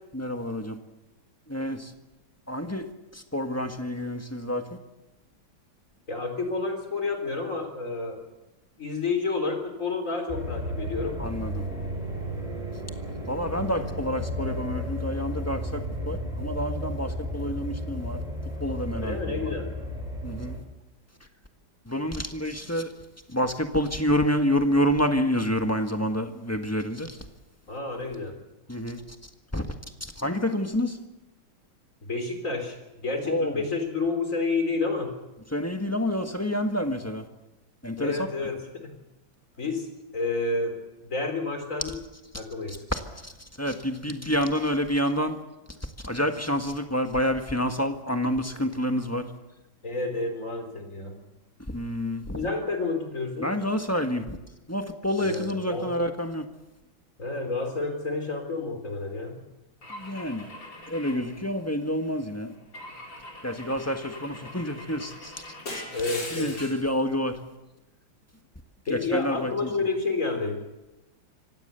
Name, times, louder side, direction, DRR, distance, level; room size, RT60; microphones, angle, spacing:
voice 1, 0.1-0.8 1.5-1.9 2.5-2.9 3.1-4.8 11.2-11.6 13.3-19.5 20.2-20.6 21.8-22.9 23.3-27.2 28.7-29.0 29.5-29.7 30.0-31.0 33.2-33.6 35.5-37.3 37.8-38.3 42.7-45.4 45.8-49.3 51.7-52.4 53.4-54.4 54.7-56.4 59.9-60.5 60.9-62.5 63.4-65.5 66.3-67.4 68.9-69.7, equal, 10° left, 5 dB, 1.3 m, -28 dB
voice 2, 6.1-8.2 8.8-11.2 18.9-19.7 27.7-28.3 32.0-32.8 33.0-35.1 38.0-38.9 39.6-39.9 40.1-40.8 41.1-41.9 42.3-42.8 49.8-51.1 52.4-53.6 55.2-55.9 57.2-59.4 65.9-66.6 68.9-70.6, left 3 dB, 40° left, 5 dB, 4.0 m, -30 dB
sound 1, 10.3-20.6, equal, 20° right, 4.5 m, -33 dB
Car / Engine / Glass, 59.8-62.0 62.7-66.9, left 2 dB, 70° left, 4.8 m, -41 dB
25.5 x 16.5 x 6.9 m, 1.0 s
omnidirectional pair, 2.2 m